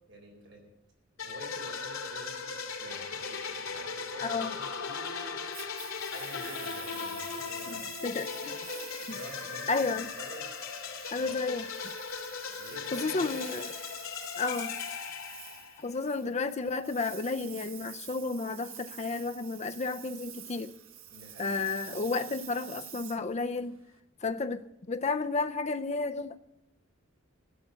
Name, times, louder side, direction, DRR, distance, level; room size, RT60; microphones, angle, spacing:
voice 1, 0.1-0.6 1.2-5.7 6.1-8.0 8.7-10.5 11.2-11.4 12.5-13.5 21.1-21.6 21.8-22.1, right 1 dB, 60° right, 3.9 m, -48 dB
sound 1, 1.2-16.0, left 5 dB, 80° left, 2.5 m, -38 dB
voice 2, 4.2-4.5 8.0-8.7 9.1-9.2 9.7-10.1 11.1-11.9 12.9-13.7 14.4-14.7 15.8-20.7 21.4-23.8 24.2-26.4, left 3 dB, 35° left, 0.5 m, -32 dB
Engine, 5.5-24.0, right 11 dB, 80° right, 1.1 m, -48 dB
14.0 x 7.6 x 9.8 m
head